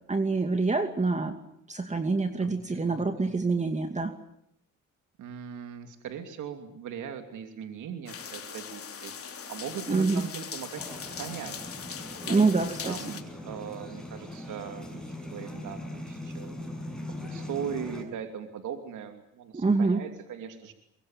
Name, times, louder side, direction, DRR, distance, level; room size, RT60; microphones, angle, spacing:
voice 1, 0.1-1.4 1.7-4.1 9.9-10.2 12.3-13.0 19.5-20.0, right 3 dB, 25° right, 6 dB, 2.5 m, -26 dB
voice 2, 2.4-3.3 5.2-11.7 12.2-12.5 12.8-16.5 17.0-20.7, right 8 dB, 80° right, 6 dB, 3.0 m, -40 dB
sound 1, 8.1-13.2, left 7 dB, 50° left, 3.5 m, -40 dB
sound 2, 10.8-18.0, left 1 dB, ahead, 7.0 m, -40 dB
23.5 x 23.0 x 9.1 m, 0.75 s
cardioid pair, 90°, 30 cm